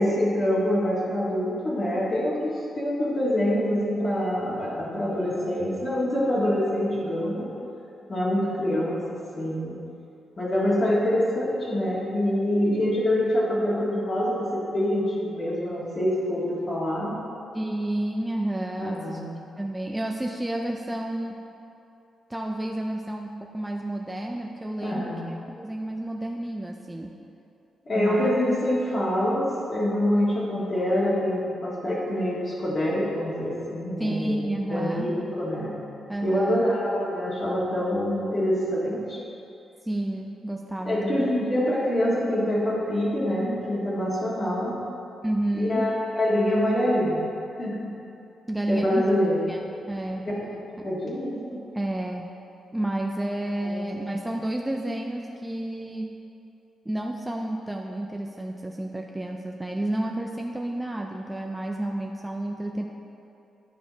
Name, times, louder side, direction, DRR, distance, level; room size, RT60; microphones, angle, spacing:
voice 1, 0.0-7.5 8.1-9.8 10.4-17.2 18.8-19.2 24.8-25.2 27.9-35.8 36.2-39.2 40.9-44.8 45.5-47.2 47.6-47.9 48.7-49.4 50.3-50.4 50.8-51.6 53.6-53.8, left 1 dB, 35° left, -7 dB, 1.8 m, -25 dB
voice 2, 17.5-19.2 19.6-21.4 22.3-25.2 25.5-27.2 28.0-28.4 34.0-35.4 36.1-36.7 39.8-41.3 45.2-45.9 48.5-49.1 49.5-49.6 49.9-50.2 50.8-50.9 51.7-52.3 52.7-56.2 56.9-62.8, right 1 dB, 10° right, 1 dB, 0.4 m, -30 dB
9.9 x 5.1 x 5.1 m, 2.8 s
cardioid pair, 125°, 0 cm